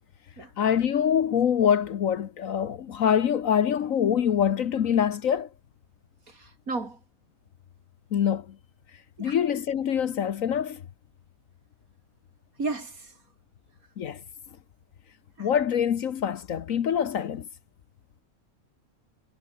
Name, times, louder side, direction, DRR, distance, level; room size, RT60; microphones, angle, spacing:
voice 1, 0.6-5.5 8.1-8.6 9.2-10.8 14.0-14.2 15.4-17.5, left 8 dB, 70° left, 1.4 m, -25 dB
voice 2, 6.4-7.0 9.2-9.4 12.6-13.1 15.4-15.5, right 3 dB, 85° right, 4.2 m, -33 dB
omnidirectional pair, 1.5 m